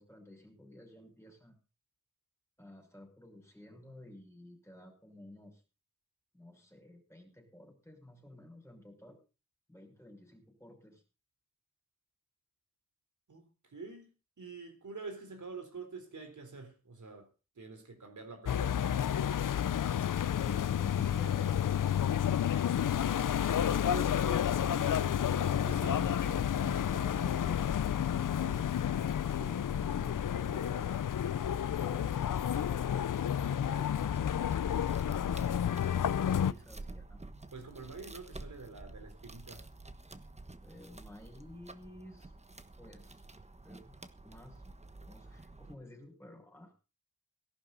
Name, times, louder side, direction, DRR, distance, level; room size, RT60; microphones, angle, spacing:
voice 1, 0.0-1.5 2.6-5.6 6.3-9.2 9.7-11.0 20.3-22.6 35.4-37.2 40.6-42.3 42.8-43.2 43.6-44.6 45.0-46.7, left 1 dB, 10° left, 5.7 m, -52 dB
voice 2, 13.3-17.3 17.6-18.8 23.7-31.2 37.5-39.7, right 4 dB, 70° right, 3.9 m, -48 dB
sound 1, 18.5-36.5, left 9 dB, 80° left, 0.6 m, -30 dB
sound 2, 33.4-45.7, right 2 dB, 20° right, 1.3 m, -50 dB
18.5 x 11.5 x 4.0 m
wide cardioid pair, 110°, 31 cm